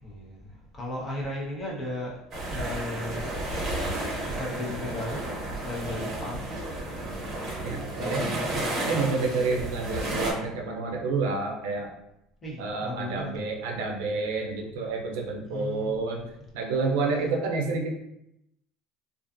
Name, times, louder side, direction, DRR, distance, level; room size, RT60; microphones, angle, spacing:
voice 1, 0.0-2.2 2.5-3.2 3.6-3.7 3.9-6.6 8.0-9.0 12.4-13.4 15.5-16.3, left 1 dB, 25° left, -4 dB, 0.8 m, -36 dB
sound 1, 2.3-10.3, right 1 dB, 45° right, 0.7 m, -32 dB
voice 2, 7.6-8.4 8.8-11.9 12.6-16.2 16.5-17.9, right 4 dB, 85° right, 1 dB, 0.5 m, -29 dB
2.4 x 2.3 x 2.4 m, 0.83 s
supercardioid pair, 125°, 0 cm